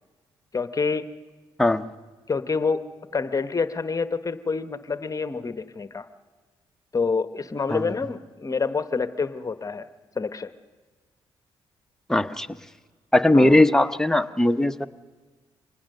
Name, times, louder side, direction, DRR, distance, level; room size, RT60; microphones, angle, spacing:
voice 1, 0.5-1.1 2.3-2.8 3.1-6.1 6.9-9.9 10.1-10.5 13.3-13.6, left 4 dB, 35° left, 11 dB, 1.0 m, -27 dB
voice 2, 12.1-12.5 13.1-14.9, left 1 dB, 5° left, 8 dB, 1.0 m, -19 dB
25.0 x 19.5 x 6.6 m, 1.4 s
supercardioid pair, 65°, 11 cm